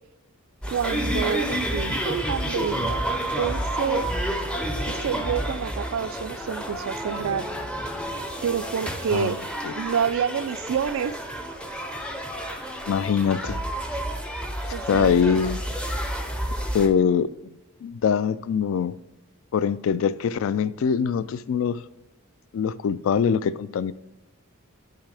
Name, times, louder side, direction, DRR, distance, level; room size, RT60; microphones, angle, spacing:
sound 1, 0.6-16.9, equal, 5° left, 0.5 m, -30 dB
voice 1, 0.7-3.0 3.4-4.1 4.9-7.5 8.4-9.4 9.7-11.2 14.7-15.2, right 7 dB, 65° right, 0.3 m, -28 dB
voice 2, 12.9-13.6 14.9-15.6 16.7-17.3 17.8-19.0 19.5-21.8 22.5-23.9, left 7 dB, 65° left, 0.3 m, -23 dB
9.0 x 5.6 x 3.4 m
head